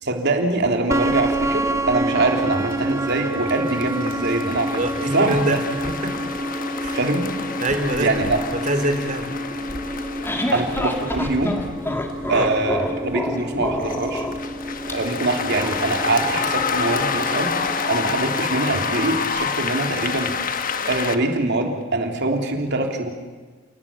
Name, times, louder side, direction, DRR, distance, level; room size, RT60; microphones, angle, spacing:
voice 1, 0.0-4.9 5.1-5.6 6.9-7.3 8.0-8.4 10.5-11.6 12.3-14.2 14.9-17.5 17.9-20.3 20.9-23.1, right 2 dB, 60° right, 3 dB, 3.3 m, -23 dB
sound 1, 0.9-19.2, right 1 dB, 15° right, 1.4 m, -29 dB
sound 2, 2.4-21.2, left 5 dB, 45° left, 1.3 m, -29 dB
voice 2, 4.8-5.6 5.9-6.1 6.8-7.0 7.6-8.1 8.5-9.3 12.3-12.5, right 1 dB, 40° right, 7 dB, 3.3 m, -24 dB
sound 3, 9.8-14.9, left 1 dB, 10° left, 1.9 m, -28 dB
29.5 x 18.5 x 8.7 m, 1.4 s
head